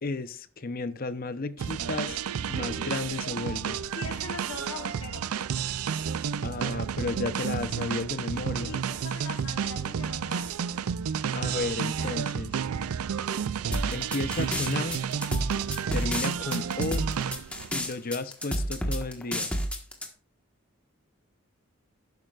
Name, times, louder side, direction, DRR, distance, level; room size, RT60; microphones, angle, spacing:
voice 1, 0.0-2.2 2.5-3.8 6.4-8.8 11.3-12.5 13.9-15.0 15.9-17.1 17.7-19.5, left 3 dB, 45° left, 0.7 m, -33 dB
sound 1, 1.6-17.7, right 7 dB, 90° right, 0.4 m, -31 dB
voice 2, 3.9-5.3 8.6-10.6, left 4 dB, 75° left, 1.1 m, -41 dB
sound 2, 13.7-20.1, equal, 5° left, 1.4 m, -30 dB
12.0 x 9.4 x 2.4 m
head